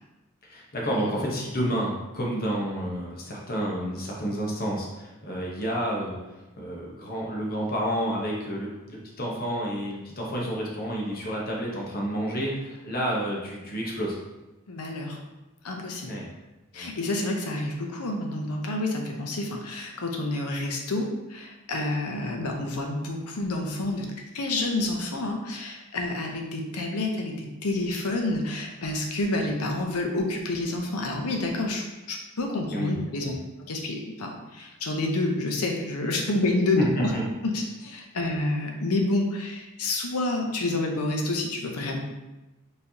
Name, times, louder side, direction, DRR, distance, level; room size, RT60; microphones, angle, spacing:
voice 1, 0.4-6.2 6.6-14.2 16.0-16.3 16.7-16.9 32.7-32.9 36.8-36.9 37.1-37.2, equal, 40° left, -3 dB, 1.0 m, -30 dB
voice 2, 14.7-15.2 15.6-16.2 16.7-24.1 24.3-33.3 33.6-37.1 37.4-42.0, left 2 dB, 85° left, 2 dB, 0.7 m, -29 dB
4.5 x 3.4 x 2.8 m, 1.1 s
head